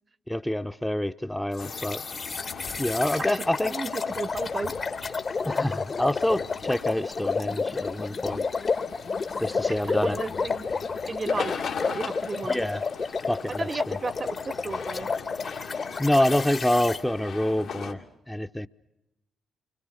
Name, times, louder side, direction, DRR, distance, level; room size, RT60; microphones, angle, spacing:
voice 1, 0.3-2.0 2.8-3.8 5.4-8.5 9.4-10.2 12.4-12.8 13.3-14.0 16.0-18.7, left 1 dB, 5° left, 0.9 m, -27 dB
sound 1, 1.6-17.9, left 6 dB, 70° left, 2.6 m, -41 dB
sound 2, 1.6-17.0, left 4 dB, 50° left, 1.6 m, -31 dB
voice 2, 3.2-4.7 5.0-5.1 9.7-10.7 11.1-12.6 13.6-15.1, right 3 dB, 40° right, 1.0 m, -34 dB
29.5 x 25.5 x 6.6 m
hypercardioid pair, 50°, 0 cm